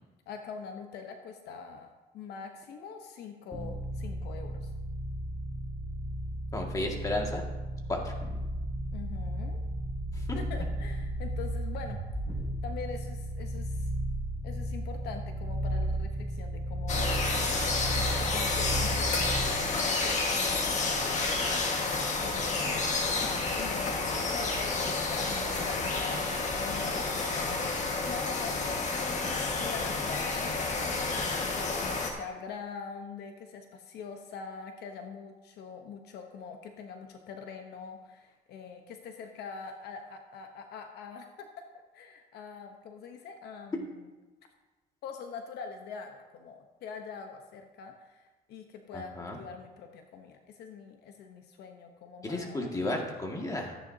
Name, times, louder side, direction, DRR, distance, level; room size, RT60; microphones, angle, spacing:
voice 1, 0.3-4.7 8.9-9.6 10.3-12.0 12.6-13.9 14.4-17.9 18.2-21.3 22.2-22.9 23.6-27.5 28.0-28.6 29.6-31.5 31.8-41.7 41.9-44.1 45.0-52.7, left 6 dB, 75° left, 5 dB, 1.0 m, -44 dB
sound 1, 3.5-19.7, right 1 dB, 10° right, 2.7 m, -34 dB
voice 2, 6.5-7.4 7.9-8.1 48.9-49.4 52.2-53.8, left 1 dB, 20° left, 0 dB, 2.0 m, -33 dB
sound 2, 16.9-32.1, left 3 dB, 45° left, 1.6 m, -30 dB
14.0 x 9.4 x 2.8 m, 1.2 s
cardioid pair, 110°, 17 cm